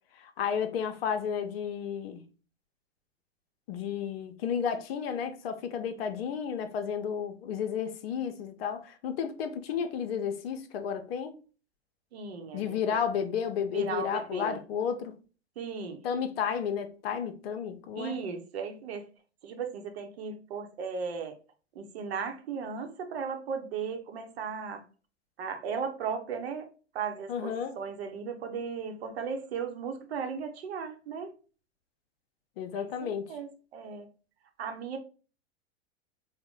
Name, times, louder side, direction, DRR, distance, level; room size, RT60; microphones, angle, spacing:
voice 1, 0.1-2.2 3.7-11.3 12.5-15.2 16.0-18.1 27.3-27.7 32.6-33.3, left 7 dB, 55° left, 0.6 m, -32 dB
voice 2, 12.1-12.8 13.7-14.6 15.6-16.0 17.9-19.1 19.4-21.4 21.7-24.8 25.4-26.7 26.9-31.3 32.7-34.1 34.6-35.0, right 6 dB, 60° right, 0.8 m, -36 dB
3.9 x 2.1 x 3.6 m
figure-of-eight pair, 95°, 35 cm